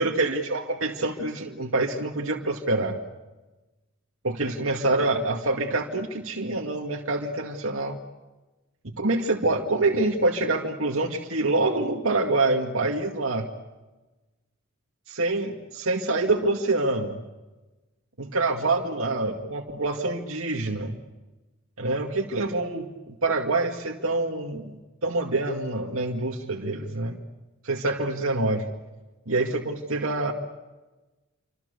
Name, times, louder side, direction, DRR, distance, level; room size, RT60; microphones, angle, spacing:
voice 1, 0.0-3.0 4.2-8.0 9.0-13.5 15.1-17.2 18.2-21.0 21.8-24.8 25.0-27.2 27.6-28.7 29.3-30.3, right 2 dB, 90° right, 0 dB, 2.3 m, -26 dB
28.5 x 26.0 x 6.9 m, 1.1 s
head